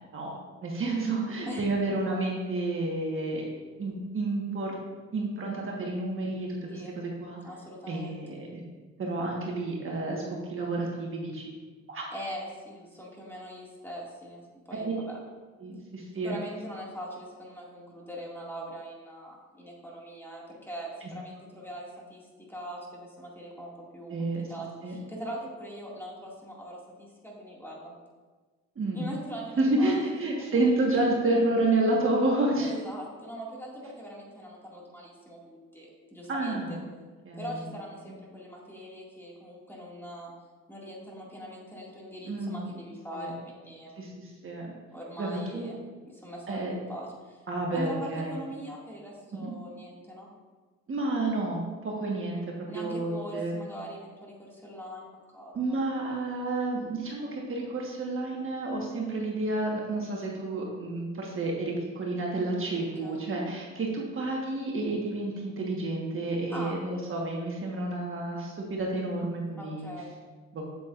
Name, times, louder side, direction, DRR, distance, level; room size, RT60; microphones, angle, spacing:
voice 1, 0.6-3.4 3.8-4.8 5.1-7.4 7.9-8.6 9.0-11.5 11.9-12.0 14.7-15.1 15.6-16.4 24.1-24.5 24.8-25.0 28.8-29.1 29.6-32.7 36.3-36.8 37.2-37.6 38.1-38.2 42.3-42.6 43.1-43.3 44.0-44.7 45.2-45.7 46.5-46.7 47.5-48.3 49.4-49.5 50.9-53.5 55.5-69.9 70.5-70.7, right 2 dB, 45° right, -2 dB, 1.4 m, -30 dB
voice 2, 7.4-8.4 12.1-14.4 14.7-15.2 16.2-22.2 22.5-27.9 28.9-30.0 30.5-30.8 31.1-31.2 32.6-36.8 37.4-40.3 40.7-44.0 44.9-45.8 46.1-47.5 47.7-50.3 52.7-55.8 62.7-63.1 66.5-66.8 69.6-70.1, equal, 5° left, -4 dB, 2.1 m, -41 dB
8.2 x 7.5 x 2.5 m, 1.3 s
cardioid pair, 90°, 30 cm